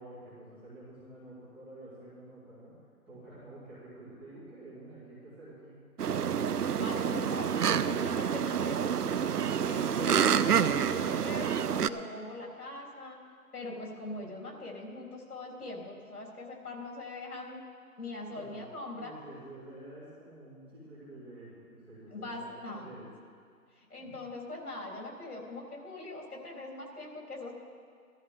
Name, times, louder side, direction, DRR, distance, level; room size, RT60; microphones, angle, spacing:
voice 1, 0.0-2.8 3.1-5.8 18.3-18.6 18.9-22.5 22.7-23.1 24.0-24.1, right 1 dB, 5° right, -14 dB, 2.1 m, -49 dB
sound 1, 6.0-11.9, right 8 dB, 85° right, 0.7 m, -28 dB
voice 2, 6.8-9.3 9.6-13.2 13.5-17.6 18.0-19.1 22.1-22.9 23.7-27.5, left 2 dB, 75° left, -1 dB, 3.8 m, -42 dB
15.5 x 13.5 x 3.7 m, 2.2 s
hypercardioid pair, 170°, 45 cm